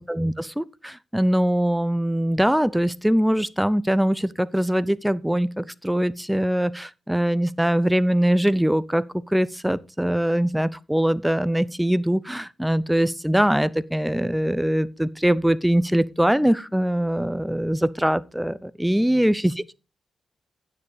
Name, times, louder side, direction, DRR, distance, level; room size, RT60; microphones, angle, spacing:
voice 1, 0.0-9.0 9.3-19.5, equal, 5° right, 0.6 m, -22 dB
15.5 x 7.0 x 3.4 m
supercardioid pair, 40°, 0 cm